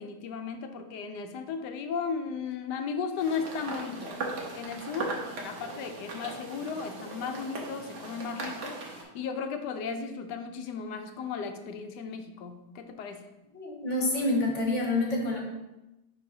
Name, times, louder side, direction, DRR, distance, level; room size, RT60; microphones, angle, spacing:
voice 1, 0.0-4.1 4.5-13.3, left 5 dB, 85° left, 7 dB, 1.3 m, -35 dB
sound 1, 3.2-9.0, right 3 dB, 85° right, 1.6 m, -38 dB
voice 2, 13.5-15.4, left 2 dB, 50° left, -2 dB, 1.5 m, -27 dB
10.0 x 3.9 x 2.7 m, 0.96 s
omnidirectional pair, 1.8 m